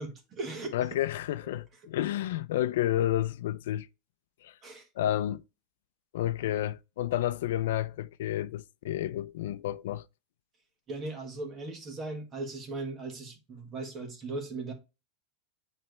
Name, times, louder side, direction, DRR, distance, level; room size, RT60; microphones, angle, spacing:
voice 1, 0.0-1.0 1.4-1.6 4.6-4.9 10.9-14.7, right 3 dB, 25° right, 1.7 m, -38 dB
voice 2, 0.7-3.9 4.4-4.5 5.0-5.4 6.1-10.0, left 12 dB, 75° left, 0.5 m, -30 dB
8.8 x 3.3 x 3.3 m
supercardioid pair, 160°, 0 cm